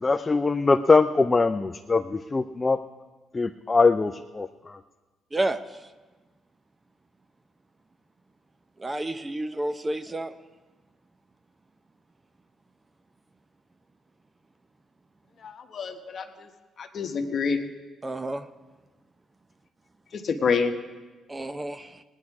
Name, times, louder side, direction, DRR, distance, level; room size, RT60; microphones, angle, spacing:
voice 1, 0.0-2.8 3.3-4.5, left 3 dB, 25° left, 7 dB, 0.5 m, -22 dB
voice 2, 8.8-10.3 18.0-18.4 21.3-22.0, right 1 dB, 20° right, 11 dB, 0.7 m, -30 dB
voice 3, 15.4-16.2 16.8-17.6 20.2-20.7, left 5 dB, 55° left, 5 dB, 1.3 m, -27 dB
19.0 x 10.0 x 4.8 m, 1.3 s
cardioid pair, 90°, 0 cm